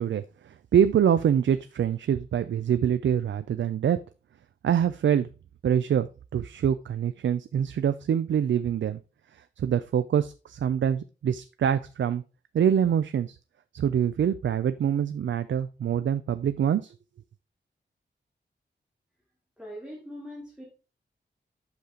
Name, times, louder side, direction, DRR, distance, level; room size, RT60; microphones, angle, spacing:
voice 1, 0.0-4.0 4.6-5.3 5.6-6.1 6.3-9.0 9.6-12.2 12.5-13.4 13.7-16.9, right 9 dB, 85° right, 12 dB, 0.5 m, -25 dB
voice 2, 19.6-20.6, equal, 5° right, -5 dB, 2.8 m, -41 dB
8.2 x 6.6 x 3.8 m, 0.32 s
wide cardioid pair, 175°, 19 cm